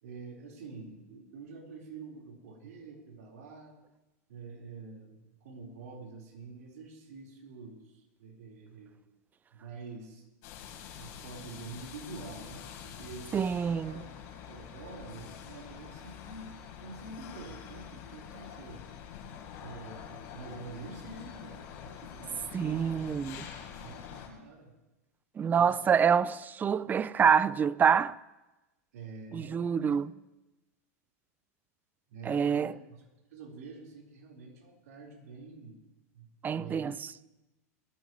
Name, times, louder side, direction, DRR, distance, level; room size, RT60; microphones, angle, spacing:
voice 1, 0.0-3.8 4.3-9.0 9.5-10.3 11.0-16.5 16.8-18.8 19.6-23.1 23.6-24.7 25.4-26.2 28.9-30.0 32.1-33.0 33.3-35.8 36.1-36.3 36.5-37.0, right 3 dB, 75° right, 4.5 m, -47 dB
sound 1, 10.4-24.3, left 8 dB, 50° left, 4.1 m, -46 dB
voice 2, 13.3-14.0 22.5-23.4 25.4-28.1 29.3-30.1 32.3-32.7 36.4-37.0, right 7 dB, 20° right, 0.5 m, -26 dB
20.5 x 15.0 x 3.2 m
hypercardioid pair, 115°, 9 cm